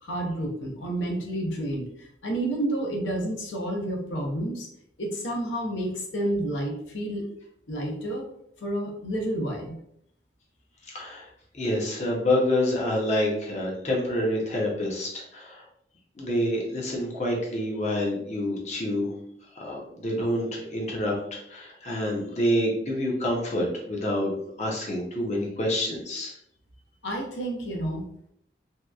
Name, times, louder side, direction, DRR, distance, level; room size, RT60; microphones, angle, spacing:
voice 1, 0.0-4.7 5.0-7.3 7.7-8.3 8.6-9.8 27.0-28.1, right 1 dB, 85° left, 1 dB, 0.6 m, -30 dB
voice 2, 10.8-11.3 11.5-15.6 16.2-19.1 19.6-24.3 24.6-26.3, left 1 dB, 40° left, -2 dB, 0.6 m, -27 dB
2.8 x 2.1 x 2.3 m, 0.71 s
head